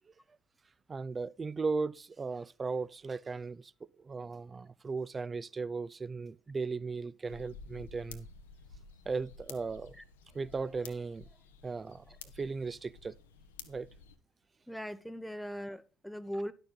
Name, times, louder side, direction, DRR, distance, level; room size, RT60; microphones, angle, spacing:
voice 1, 0.9-3.7 4.0-8.3 9.1-10.0 10.3-11.3 11.6-13.1 13.7-13.9 16.3-16.4, right 4 dB, 30° right, 0.5 m, -37 dB
sound 1, 7.3-14.2, left 5 dB, 80° left, 0.8 m, -52 dB
voice 2, 14.7-16.5, equal, 5° left, 0.9 m, -39 dB
11.0 x 6.7 x 3.9 m
figure-of-eight pair, 55°, 0 cm